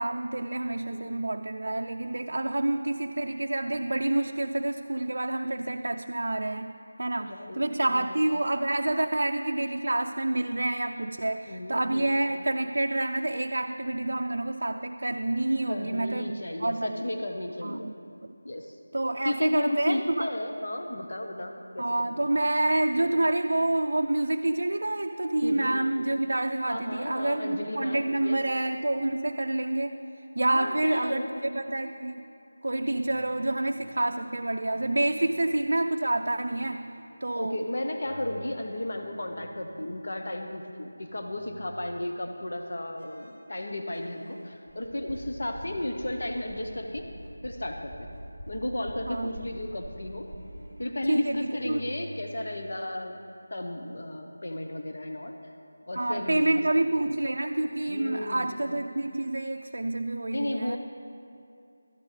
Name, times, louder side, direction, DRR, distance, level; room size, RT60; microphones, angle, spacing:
voice 1, 0.0-16.9 17.6-17.9 18.9-20.3 21.8-30.0 30.4-32.2 32.6-36.9 37.2-37.6 49.1-49.3 51.1-51.8 56.0-60.8, right 2 dB, 60° right, 4 dB, 0.4 m, -28 dB
voice 2, 7.2-8.1 11.5-12.2 15.7-17.8 18.4-18.8 19.2-22.1 22.9-23.1 25.4-25.8 26.7-28.4 30.5-31.4 37.4-47.1 47.4-48.1 48.5-50.3 50.8-53.2 53.5-55.3 55.9-56.4 57.0-57.2 57.9-58.6 60.3-60.8, left 1 dB, 55° left, 4 dB, 0.8 m, -34 dB
sound 1, 33.0-40.5 40.9-42.4 43.0-52.7, equal, 90° left, 3.2 m, -51 dB
sound 2, 44.7-50.6, right 1 dB, 25° left, 2.3 m, -44 dB
16.0 x 13.0 x 3.3 m, 2.6 s
figure-of-eight pair, 180°, 0 cm